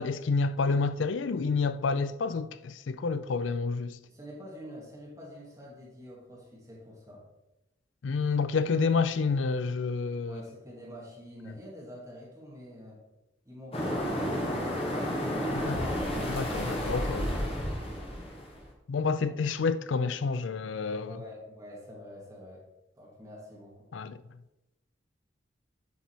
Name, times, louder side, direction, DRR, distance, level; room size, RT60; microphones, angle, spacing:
voice 1, 0.0-4.0 8.0-10.4 15.5-15.8 16.3-17.4 18.9-21.2 23.9-24.2, left 4 dB, 80° left, 0.4 m, -29 dB
voice 2, 4.0-7.2 10.3-13.0 13.5-16.1 19.2-19.3 21.0-22.6 22.9-23.9, equal, 15° right, 2.1 m, -47 dB
sound 1, 13.7-18.6, equal, 30° left, 1.4 m, -31 dB
8.3 x 5.3 x 4.6 m
head